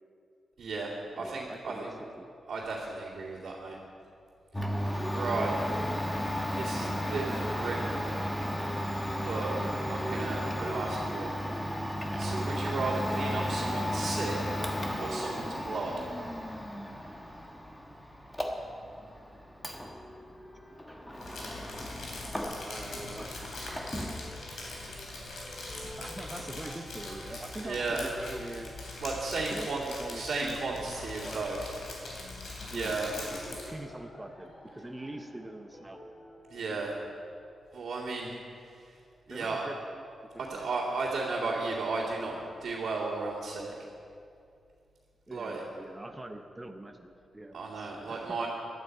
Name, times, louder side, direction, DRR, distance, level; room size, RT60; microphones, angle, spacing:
voice 1, 0.6-1.9 2.5-3.8 4.8-5.6 6.5-8.2 9.2-9.5 9.9-11.3 12.2-14.4 15.0-15.9 27.3-28.0 29.0-29.8 30.1-31.7 32.7-33.1 36.5-37.0 37.7-38.3 38.8-38.9 39.3-39.7 40.4-43.7 45.3-45.6 47.5-48.5, right 3 dB, 70° right, -8 dB, 2.4 m, -34 dB
voice 2, 1.1-2.3 9.3-9.6 22.4-23.3 26.0-28.7 29.5-31.4 32.7-36.0 39.3-40.0 40.5-40.7 45.3-48.5, right 1 dB, 15° right, 4 dB, 0.7 m, -44 dB
Domestic sounds home sounds, 4.5-22.9 23.1-24.2, equal, 10° left, 1.3 m, -34 dB
sound 1, 19.2-37.7, equal, 40° left, 4.0 m, -53 dB
Crumpling crinkling, 21.2-33.8, left 2 dB, 75° left, 3.4 m, -42 dB
17.0 x 11.5 x 4.8 m, 2.5 s
wide cardioid pair, 130°, 0 cm